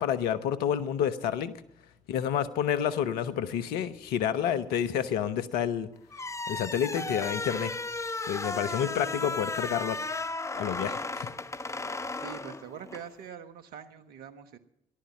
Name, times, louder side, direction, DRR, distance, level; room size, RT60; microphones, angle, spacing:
voice 1, 0.0-1.5 2.1-5.9 6.5-7.7 8.3-10.0 10.5-11.3, left 9 dB, 70° left, 12 dB, 1.0 m, -29 dB
sound 1, 6.1-13.1, left 3 dB, 20° left, 0.8 m, -35 dB
voice 2, 12.2-14.6, right 8 dB, 65° right, 9 dB, 1.3 m, -44 dB
15.0 x 11.5 x 7.3 m, 0.81 s
hypercardioid pair, 45°, 17 cm